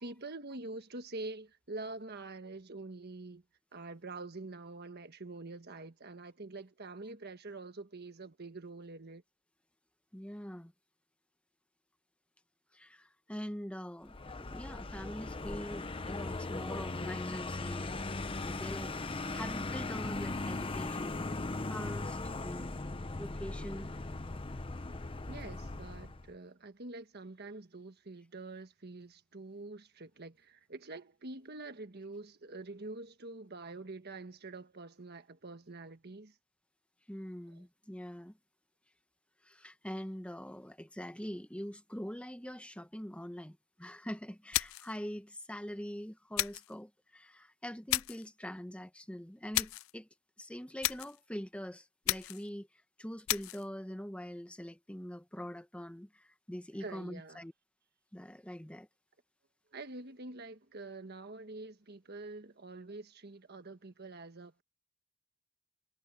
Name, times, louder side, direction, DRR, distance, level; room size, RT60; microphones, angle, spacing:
voice 1, 0.0-3.4 3.7-9.2 25.3-36.4 56.8-57.4 59.7-64.6, right 2 dB, 50° right, 1.5 m, -46 dB
voice 2, 10.1-10.7 12.7-17.9 18.4-21.4 21.7-22.8 23.2-23.9 37.1-38.4 39.4-50.1 50.4-52.7 53.0-57.5 58.1-58.9, equal, 5° left, 0.9 m, -43 dB
Vehicle, 14.0-26.3, left 2 dB, 25° left, 0.8 m, -38 dB
sound 1, 44.5-45.0 46.4-46.7 47.9-48.3 49.5-49.9 50.8-51.2 52.1-52.5 53.3-53.6, left 17 dB, 80° left, 0.4 m, -33 dB
head